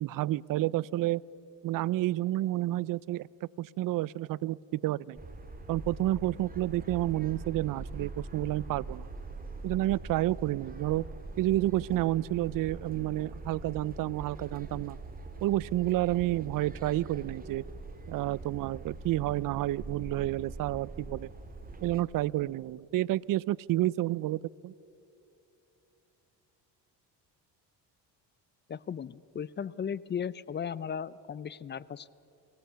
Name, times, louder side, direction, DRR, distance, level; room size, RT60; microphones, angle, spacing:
voice 1, 0.0-1.2 1.6-5.2 5.7-9.1 9.6-11.0 11.4-15.0 15.4-17.6 18.1-21.3 21.8-24.7, right 15 dB, 50° right, 22 dB, 0.4 m, -30 dB
sound 1, 5.2-22.0, right 2 dB, 20° right, 2.1 m, -43 dB
voice 2, 28.7-32.1, left 7 dB, 25° left, 20 dB, 0.4 m, -36 dB
24.5 x 17.5 x 6.8 m, 2.8 s
cardioid pair, 100°, 43 cm